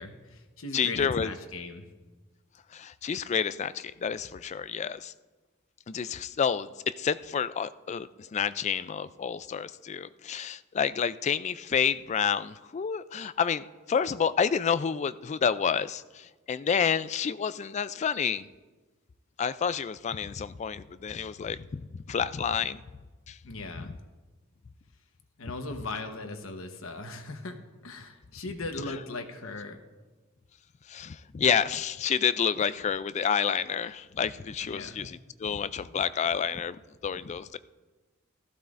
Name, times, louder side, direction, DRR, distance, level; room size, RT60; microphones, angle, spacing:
voice 1, 0.0-1.9 23.4-23.9 25.4-27.6 27.8-29.8 34.6-35.1, left 2 dB, 80° left, 6 dB, 1.1 m, -38 dB
voice 2, 0.7-1.3 2.7-5.1 5.9-18.5 19.4-21.8 22.1-22.8 23.3-23.4 23.8-23.9 30.9-37.6, left 7 dB, 35° left, 15 dB, 0.3 m, -29 dB
15.0 x 14.5 x 2.5 m, 1.2 s
head